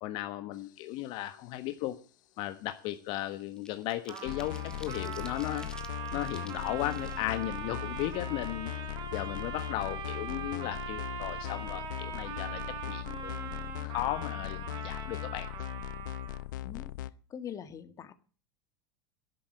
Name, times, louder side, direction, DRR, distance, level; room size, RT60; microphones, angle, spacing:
voice 1, 0.0-1.9 2.4-5.7 6.1-8.7 9.1-12.6 12.9-13.3 13.8-15.5, left 15 dB, 50° left, 9 dB, 1.3 m, -36 dB
sound 1, 1.6-1.8 2.2-8.6 9.0-9.1 9.4-10.4 10.7-10.8 11.1-11.4, left 2 dB, 5° left, 1.9 m, -54 dB
Trumpet, 4.1-16.5, right 8 dB, 45° right, 4.6 m, -41 dB
sound 2, 4.3-17.1, left 16 dB, 70° left, 0.8 m, -39 dB
voice 2, 17.3-18.1, left 8 dB, 30° left, 11 dB, 1.8 m, -42 dB
11.0 x 11.0 x 9.5 m, 0.40 s
hypercardioid pair, 95°, 11 cm